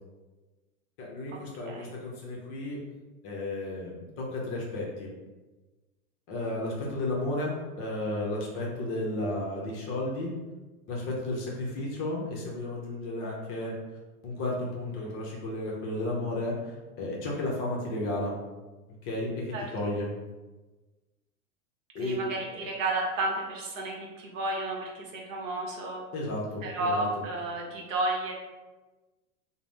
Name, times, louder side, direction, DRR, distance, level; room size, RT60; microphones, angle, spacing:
voice 1, 1.0-2.8 3.2-5.1 6.3-10.3 10.9-13.8 14.2-18.3 19.0-20.1 21.9-22.2 22.5-22.7 26.1-27.2, left 1 dB, 30° left, -3 dB, 0.6 m, -33 dB
voice 2, 22.0-26.0 26.6-28.3, right 2 dB, 60° right, 0 dB, 0.8 m, -32 dB
2.4 x 2.0 x 3.4 m, 1.2 s
hypercardioid pair, 100°, 46 cm